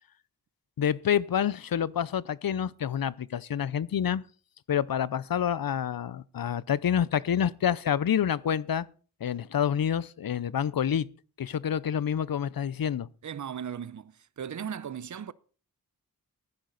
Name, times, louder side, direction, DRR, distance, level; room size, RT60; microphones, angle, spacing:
voice 1, 0.8-4.2 4.7-8.8 9.2-11.1 11.4-13.1, left 9 dB, 65° left, 0.6 m, -28 dB
voice 2, 13.2-15.3, right 8 dB, 50° right, 0.7 m, -37 dB
15.0 x 10.5 x 4.0 m
cardioid pair, 45°, 38 cm